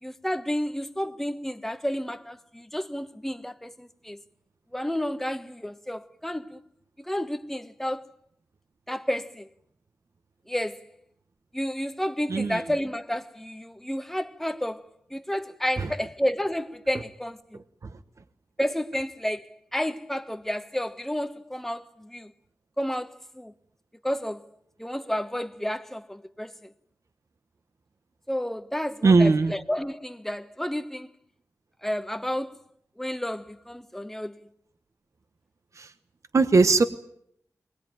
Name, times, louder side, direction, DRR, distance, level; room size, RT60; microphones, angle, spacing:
voice 1, 0.0-4.2 4.7-6.6 7.0-8.1 8.9-9.5 10.5-10.9 11.5-14.8 15.1-17.6 18.6-22.3 22.8-23.5 24.0-24.5 24.8-26.7 28.3-31.1 31.8-32.6 33.0-34.5, equal, 5° left, 1.2 m, -31 dB
voice 2, 12.3-12.6 15.8-15.9 17.5-18.0 29.0-29.5 35.7-35.9 36.3-36.8, right 3 dB, 50° right, 1.1 m, -20 dB
22.0 x 19.5 x 9.2 m
wide cardioid pair, 90°, 7 cm